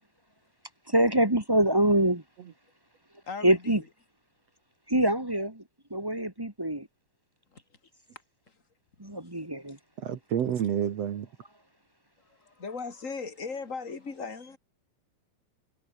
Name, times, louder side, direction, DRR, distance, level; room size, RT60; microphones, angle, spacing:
voice 1, 0.9-2.2 3.4-3.8 4.9-5.6 5.9-6.9 9.0-9.8, right 1 dB, 15° right, 0.9 m, -25 dB
voice 2, 3.3-3.9 7.5-7.6 8.5-8.6 9.2-9.3 12.3-14.6, left 4 dB, 20° left, 2.8 m, -38 dB
voice 3, 10.0-11.3, right 9 dB, 55° right, 2.0 m, -29 dB
omnidirectional pair, 4.3 m